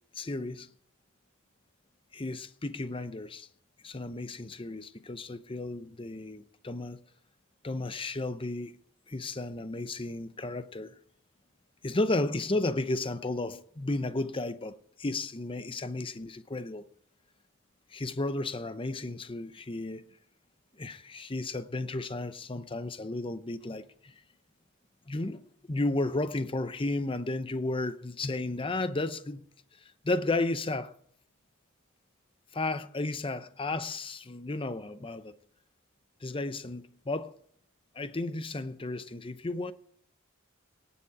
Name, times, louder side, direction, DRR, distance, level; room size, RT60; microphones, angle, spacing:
voice 1, 0.1-0.7 2.1-3.5 3.8-7.0 7.6-8.8 9.1-10.9 11.8-16.9 17.9-20.1 20.8-24.1 25.1-25.4 25.7-29.4 29.8-30.9 32.5-35.3 36.2-37.3 37.9-39.7, left 2 dB, 25° left, 0.7 m, -33 dB
18.0 x 7.2 x 4.8 m
head